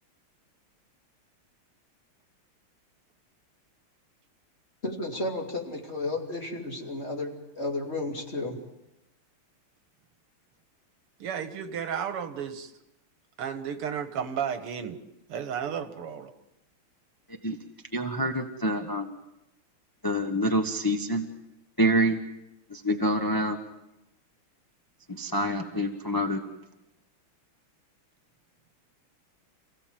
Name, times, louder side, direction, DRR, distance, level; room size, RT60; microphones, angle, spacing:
voice 1, 4.8-8.6, left 2 dB, 30° left, 0 dB, 3.2 m, -33 dB
voice 2, 11.2-12.7 13.4-15.0 15.3-16.3, right 8 dB, 85° right, 9 dB, 2.3 m, -33 dB
voice 3, 17.9-19.2 20.0-21.3 21.8-22.2 22.7-23.6 25.1-26.4, equal, 15° left, 3 dB, 1.0 m, -26 dB
28.5 x 16.5 x 7.7 m, 0.91 s
omnidirectional pair, 2.4 m